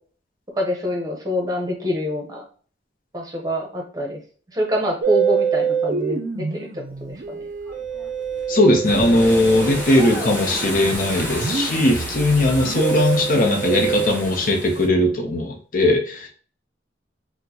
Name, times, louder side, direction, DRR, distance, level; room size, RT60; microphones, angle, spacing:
voice 1, 0.5-2.4 3.1-4.2 4.5-7.4, equal, 20° right, 0 dB, 0.8 m, -26 dB
Musical instrument, 5.0-14.1, right 6 dB, 50° right, 0.4 m, -26 dB
sound 1, 7.2-14.9, equal, 10° left, 1.1 m, -31 dB
voice 2, 8.5-16.3, left 1 dB, 50° left, 3 dB, 0.7 m, -19 dB
4.2 x 2.1 x 2.8 m, 0.43 s
head